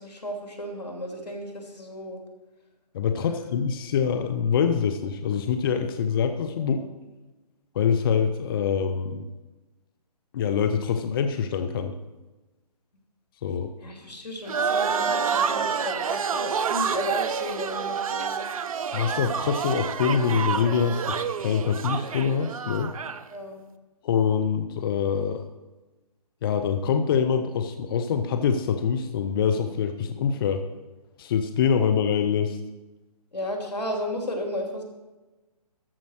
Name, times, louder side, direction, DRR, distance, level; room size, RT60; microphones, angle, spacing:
voice 1, 0.0-2.2 3.2-3.5 6.5-6.9 13.8-18.5 23.3-23.6 33.3-34.8, left 1 dB, 90° left, 2 dB, 2.8 m, -34 dB
voice 2, 2.9-6.8 7.7-9.3 10.3-11.9 13.4-13.7 18.9-22.9 24.0-25.4 26.4-30.6 31.2-32.6, left 7 dB, 35° left, 8 dB, 0.6 m, -25 dB
sound 1, 14.5-23.2, right 6 dB, 60° right, 0.7 m, -28 dB
13.5 x 5.2 x 6.4 m, 1.1 s
hypercardioid pair, 150°, 20 cm